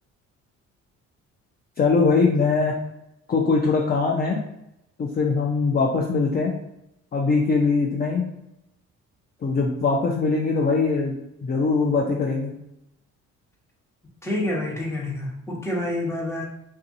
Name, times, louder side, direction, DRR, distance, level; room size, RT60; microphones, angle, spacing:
voice 1, 1.8-2.8 3.3-4.4 5.0-6.5 7.1-8.3 9.4-11.2 11.4-12.5, left 4 dB, 35° left, 0 dB, 0.4 m, -21 dB
voice 2, 14.2-16.5, left 1 dB, 10° left, -2 dB, 0.9 m, -28 dB
3.5 x 2.7 x 2.6 m, 0.82 s
cardioid pair, 90°, 30 cm